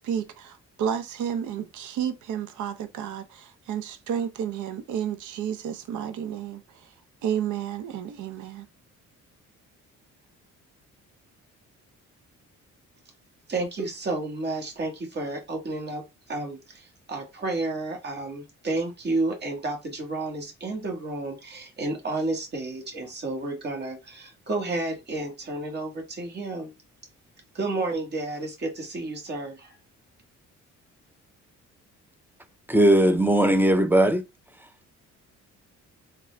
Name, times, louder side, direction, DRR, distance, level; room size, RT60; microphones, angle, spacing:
voice 1, 0.0-6.6 7.2-8.7, right 9 dB, 75° right, 0.7 m, -31 dB
voice 2, 13.5-26.7 27.5-29.7, right 2 dB, 35° right, 1.4 m, -31 dB
voice 3, 32.7-34.2, right 1 dB, 5° right, 0.5 m, -19 dB
3.6 x 2.3 x 3.1 m
cardioid pair, 90°, 30 cm